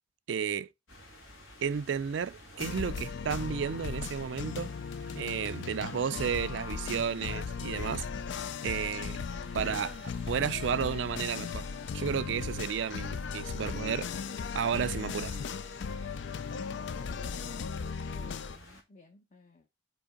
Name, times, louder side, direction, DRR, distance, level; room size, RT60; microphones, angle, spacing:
voice 1, 0.3-0.7 1.6-4.7 5.2-8.0 8.6-9.3 9.5-10.0 10.3-11.7 11.9-14.1 14.5-15.4, right 7 dB, 70° right, 0.4 m, -32 dB
sound 1, 0.9-18.8, left 1 dB, 85° left, 2.3 m, -53 dB
sound 2, 2.6-18.6, left 5 dB, 65° left, 0.4 m, -37 dB
Motorcycle / Traffic noise roadway noise, 3.0-17.1, right 1 dB, 10° right, 0.6 m, -60 dB
voice 2, 16.6-17.6 18.1-19.7, left 3 dB, 40° left, 0.8 m, -55 dB
5.2 x 4.6 x 4.9 m
head